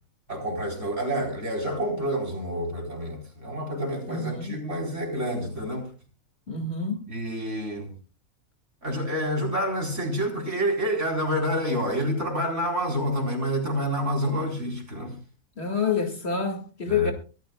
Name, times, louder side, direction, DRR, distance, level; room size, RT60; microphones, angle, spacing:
voice 1, 0.3-5.9 7.1-7.9 8.8-15.2 16.9-17.1, equal, 60° right, 4.6 m, -28 dB
voice 2, 4.1-4.6 6.5-7.1 15.6-17.1, left 5 dB, 50° left, 2.3 m, -27 dB
24.0 x 13.5 x 2.3 m
omnidirectional pair, 1.4 m